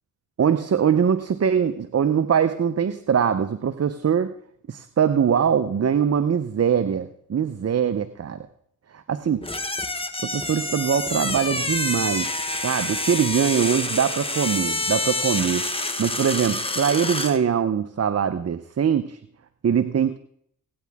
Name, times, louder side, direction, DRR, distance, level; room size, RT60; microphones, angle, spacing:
voice 1, 0.4-4.3 4.7-8.4 8.9-9.4 10.2-12.3 12.6-15.7 16.0-19.2 19.6-20.2, right 7 dB, 45° right, 10 dB, 0.8 m, -22 dB
sound 1, 9.4-17.4, left 2 dB, 15° left, 1.4 m, -27 dB
18.0 x 9.5 x 3.6 m, 0.68 s
supercardioid pair, 55°, 37 cm